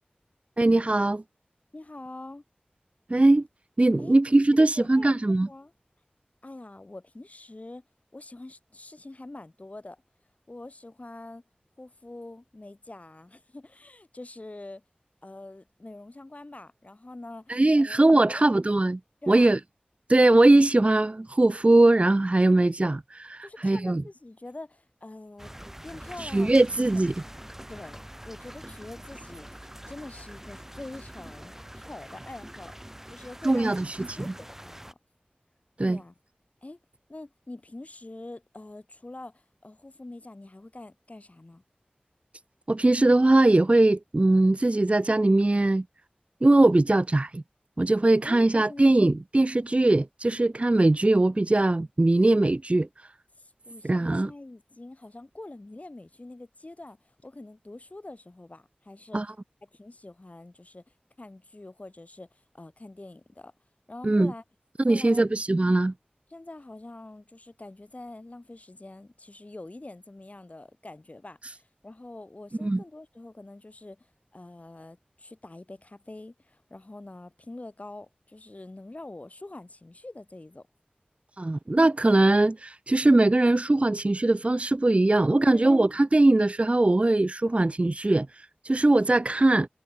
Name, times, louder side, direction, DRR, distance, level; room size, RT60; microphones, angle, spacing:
voice 1, 0.6-1.2 3.1-3.5 3.8-5.5 17.5-19.0 19.3-19.6 20.1-24.0 26.2-27.1 33.4-34.3 35.8-36.0 42.7-45.8 46.4-47.4 47.8-53.1 53.8-54.3 59.1-59.3 64.0-64.3 64.8-65.9 72.6-72.8 81.4-89.7, right 2 dB, 40° right, 0.7 m, -21 dB
voice 2, 1.7-2.4 4.0-4.2 4.5-5.7 6.4-7.8 8.1-10.0 10.5-11.4 11.8-14.8 15.2-18.5 19.2-19.5 23.4-25.5 25.8-26.7 27.7-29.6 29.8-32.8 33.1-33.7 34.2-35.0 35.8-36.1 36.6-36.8 37.1-41.6 48.2-49.2 53.4-59.2 59.7-60.8 61.2-63.5 63.9-64.4 64.9-65.4 66.3-74.1 74.3-80.7 85.3-85.8, left 2 dB, 45° left, 2.8 m, -45 dB
sound 1, 25.4-34.9, equal, 10° right, 1.4 m, -44 dB
wide cardioid pair, 45°, 3 cm